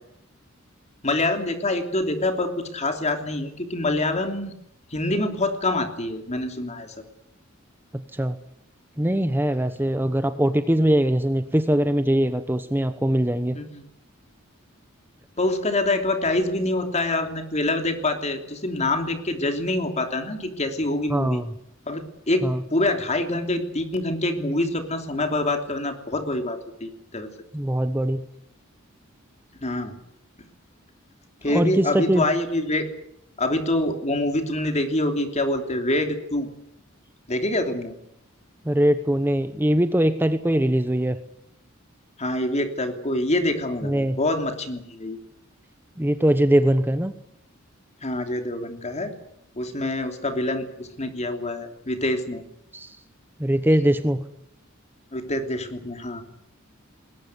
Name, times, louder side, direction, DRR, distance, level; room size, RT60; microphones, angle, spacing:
voice 1, 1.0-4.5 4.9-7.0 13.5-13.8 15.4-21.4 21.9-27.3 29.6-30.0 31.4-32.9 33.4-36.5 37.3-37.9 42.2-45.2 48.0-49.1 49.6-52.4 55.1-56.2, left 2 dB, 35° left, 6 dB, 3.1 m, -26 dB
voice 2, 7.9-8.4 9.0-13.6 21.1-21.5 22.4-22.6 27.5-28.2 31.5-32.2 38.6-41.2 43.8-44.2 46.0-47.1 52.7-53.0 53.4-54.2, right 1 dB, 10° right, 10 dB, 1.0 m, -22 dB
21.0 x 18.0 x 9.7 m, 0.78 s
head